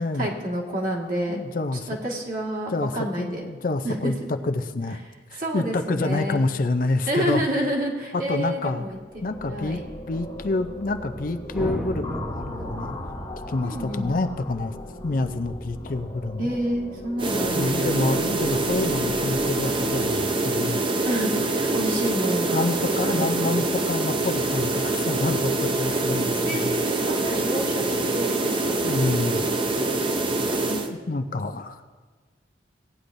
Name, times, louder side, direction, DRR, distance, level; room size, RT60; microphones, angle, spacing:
voice 1, 0.1-1.4 1.9-3.5 3.8-4.2 5.3-6.4 7.1-9.8 13.6-14.1 16.4-18.2 21.0-22.7 23.0-23.6 26.4-28.9, equal, 50° right, -3 dB, 1.9 m, -29 dB
voice 2, 1.3-1.9 2.7-2.9 3.2-5.0 5.3-7.4 8.1-8.9 9.2-9.8 10.1-13.0 13.5-14.8 15.0-16.6 17.5-20.8 22.5-26.8 28.8-29.4 30.7-31.8, left 2 dB, 50° left, 8 dB, 0.5 m, -27 dB
sound 1, 8.7-20.2, left 1 dB, 25° left, 0.8 m, -39 dB
sound 2, 11.5-15.9, equal, 5° right, 1.0 m, -35 dB
sound 3, 17.2-30.9, right 2 dB, 30° right, 0.6 m, -25 dB
17.0 x 9.8 x 2.6 m, 1.4 s
head